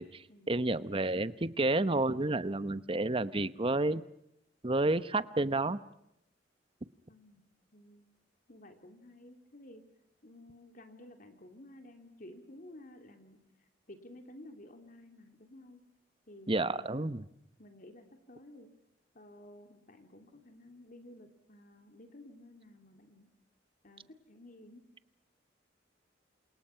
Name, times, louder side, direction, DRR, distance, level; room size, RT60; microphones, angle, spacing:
voice 1, 0.0-4.0 4.6-5.8 16.5-17.3, right 2 dB, 30° right, 14 dB, 1.0 m, -30 dB
voice 2, 7.1-8.0 8.5-9.8 10.2-13.4 13.9-15.8 16.3-17.1 17.6-18.7 19.1-23.3 23.8-24.8, left 1 dB, 50° left, 6 dB, 3.0 m, -53 dB
29.0 x 28.0 x 5.8 m, 0.82 s
head